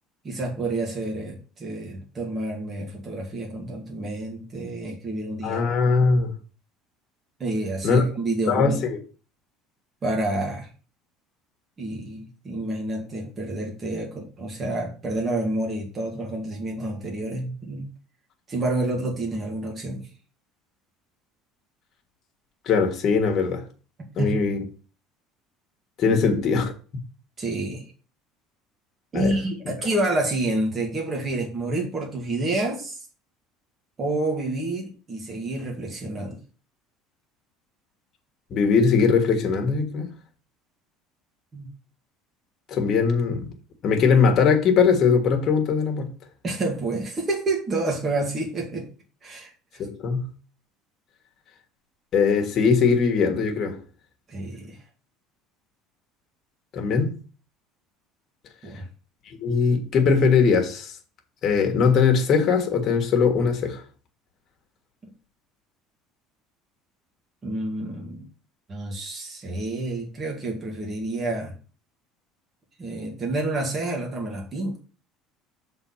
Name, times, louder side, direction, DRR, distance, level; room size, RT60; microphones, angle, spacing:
voice 1, 0.2-5.8 7.4-8.8 10.0-10.7 11.8-17.9 18.5-20.1 24.2-24.3 26.0-26.2 27.4-27.8 29.1-33.1 34.0-36.4 41.5-41.7 46.4-48.9 49.2-49.9 54.3-54.8 58.6-58.8 67.4-68.3 68.7-71.5 72.8-74.8, right 2 dB, 20° right, 1.7 m, -29 dB
voice 2, 5.4-6.3 7.8-8.0 8.5-8.8 22.6-23.6 24.2-24.6 26.0-26.7 29.1-29.3 38.5-40.1 42.7-43.5 43.8-46.1 49.8-50.3 52.1-53.8 56.7-57.1 59.4-60.9 61.4-63.8, left 5 dB, 35° left, 1.6 m, -20 dB
6.9 x 4.0 x 5.7 m
cardioid pair, 165°, 0 cm